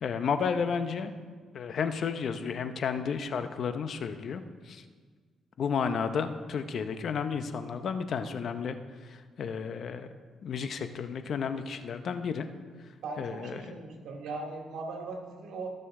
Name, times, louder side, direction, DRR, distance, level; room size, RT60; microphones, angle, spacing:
voice 1, 0.0-1.1 1.5-4.8 5.6-8.8 9.1-10.1 10.4-12.4 13.2-13.6, left 6 dB, 60° left, 9 dB, 0.7 m, -32 dB
voice 2, 13.0-15.7, right 3 dB, 80° right, 0 dB, 2.2 m, -39 dB
18.0 x 6.7 x 3.7 m, 1.5 s
cardioid pair, 90°, 0 cm